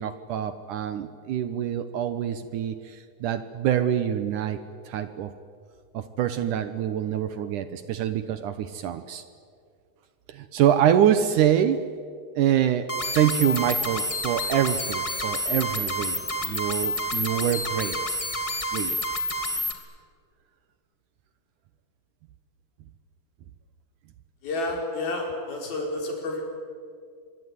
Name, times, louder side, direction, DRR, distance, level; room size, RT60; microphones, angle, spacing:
voice 1, 0.0-4.6 4.9-5.3 5.9-9.2 10.3-11.8 12.4-18.0 18.7-19.0, right 10 dB, 70° right, 11 dB, 2.2 m, -25 dB
sound 1, 12.9-19.7, left 1 dB, 15° left, 1.5 m, -29 dB
voice 2, 24.4-26.5, left 2 dB, 75° left, 1 dB, 6.6 m, -30 dB
25.0 x 23.0 x 9.7 m, 2.2 s
omnidirectional pair, 4.3 m